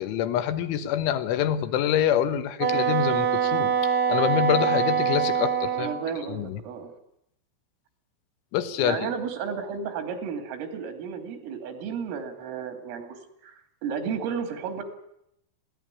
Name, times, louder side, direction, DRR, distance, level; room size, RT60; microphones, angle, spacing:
voice 1, 0.0-5.9 6.3-6.6 8.5-9.1, left 10 dB, 75° left, 11 dB, 3.4 m, -26 dB
Wind instrument woodwind instrument, 2.6-6.0, right 7 dB, 50° right, 1.6 m, -24 dB
voice 2, 5.7-6.9 8.8-13.2 13.4-14.8, right 6 dB, 80° right, 6 dB, 5.2 m, -33 dB
20.5 x 17.0 x 9.8 m, 0.78 s
omnidirectional pair, 5.8 m